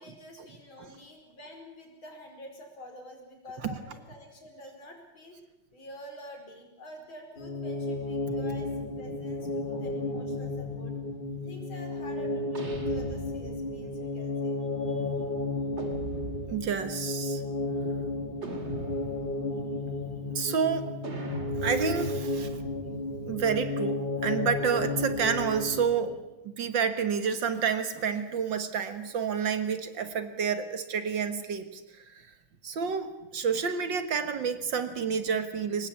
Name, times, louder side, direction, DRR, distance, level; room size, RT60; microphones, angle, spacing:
voice 1, 0.0-5.4 5.7-11.0 11.4-14.6, equal, 70° left, 3 dB, 5.6 m, -47 dB
sound 1, 7.4-26.2, left 2 dB, 25° left, 3.1 m, -33 dB
voice 2, 9.5-9.9 16.5-17.4 20.4-20.9 21.6-22.6 23.3-26.2 26.4-32.3 32.6-35.9, right 6 dB, 60° right, 10 dB, 2.2 m, -29 dB
sound 2, 12.5-13.8 15.8-16.9 18.4-19.5 21.0-23.7, right 2 dB, 35° right, 2.5 m, -40 dB
23.5 x 19.5 x 8.5 m, 0.97 s
omnidirectional pair, 2.3 m